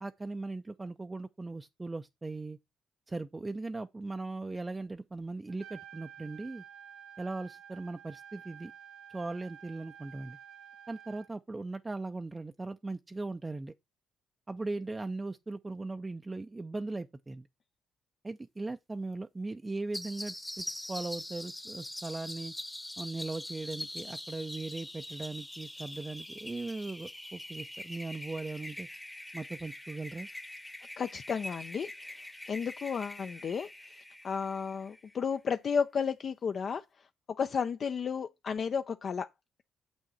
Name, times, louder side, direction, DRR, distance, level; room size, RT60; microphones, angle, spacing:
voice 1, 0.0-2.6 3.1-6.6 7.2-8.7 9.1-10.4 10.9-13.7 14.5-17.5 18.2-22.5 23.0-28.9 29.3-30.3, right 3 dB, 20° right, 0.4 m, -39 dB
Trumpet, 5.5-11.3, right 9 dB, 85° right, 1.2 m, -51 dB
sound 1, 19.9-35.2, left 1 dB, 10° left, 0.9 m, -43 dB
voice 2, 31.0-32.2 32.5-37.1 37.4-39.3, left 6 dB, 50° left, 0.5 m, -33 dB
6.9 x 6.3 x 4.2 m
cardioid pair, 90°, 0 cm